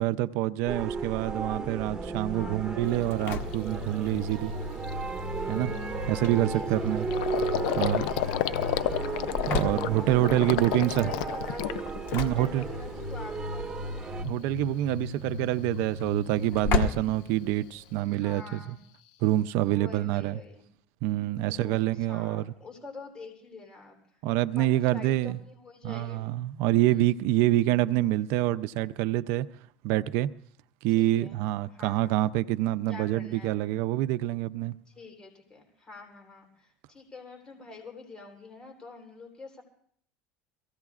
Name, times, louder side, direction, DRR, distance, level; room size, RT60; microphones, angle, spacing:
voice 1, 0.0-4.5 5.5-5.7 6.1-7.1 7.8-8.0 9.5-11.1 12.1-12.6 14.2-18.6 19.2-20.4 21.0-22.5 24.2-25.4 25.8-29.5 29.8-30.3 30.8-34.7, right 15 dB, 70° right, 0.4 m, -26 dB
sound 1, 0.7-14.2, right 4 dB, 20° right, 1.7 m, -35 dB
voice 2, 2.2-3.0 4.4-4.9 6.1-7.5 8.1-9.3 10.0-14.1 18.1-18.8 19.6-20.6 21.4-24.2 24.5-26.2 26.8-27.1 30.9-31.4 31.7-32.3 32.9-33.6 34.9-39.6, left 3 dB, 20° left, 3.4 m, -46 dB
Gurgling, 2.9-3.0 3.5-3.8 4.2-4.3 4.6-12.6 13.0-13.6, left 13 dB, 85° left, 0.6 m, -32 dB
Engine / Slam, 2.9-18.0, left 3 dB, 60° left, 1.3 m, -36 dB
23.5 x 16.0 x 2.4 m
supercardioid pair, 125°, 4 cm